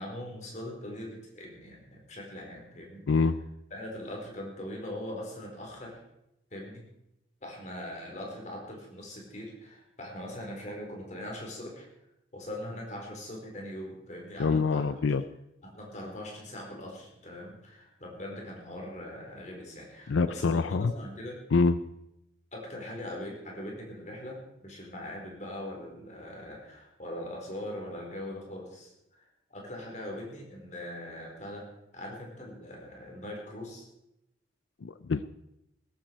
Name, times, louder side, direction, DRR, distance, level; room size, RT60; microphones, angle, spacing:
voice 1, 0.0-3.1 3.7-6.0 6.5-6.8 7.4-11.9 12.3-14.9 15.6-21.4 22.5-28.9 29.5-33.9, left 1 dB, 40° left, 0 dB, 4.4 m, -41 dB
voice 2, 14.4-15.2 20.1-20.9 21.5-21.7 34.8-35.2, left 4 dB, 80° left, 13 dB, 0.5 m, -25 dB
17.0 x 14.0 x 4.7 m, 0.85 s
head